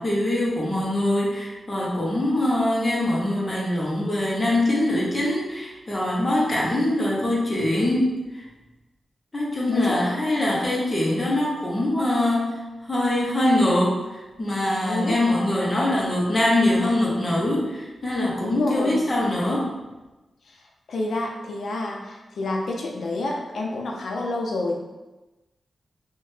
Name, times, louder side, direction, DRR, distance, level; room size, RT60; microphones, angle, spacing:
voice 1, 0.0-8.5 9.3-19.7, left 1 dB, 25° left, -4 dB, 0.6 m, -23 dB
voice 2, 9.7-10.2 14.8-15.2 15.7-15.9 18.4-18.9 20.9-24.8, left 2 dB, 70° left, 0 dB, 0.4 m, -29 dB
2.8 x 2.1 x 3.1 m, 1.1 s
wide cardioid pair, 170°, 0 cm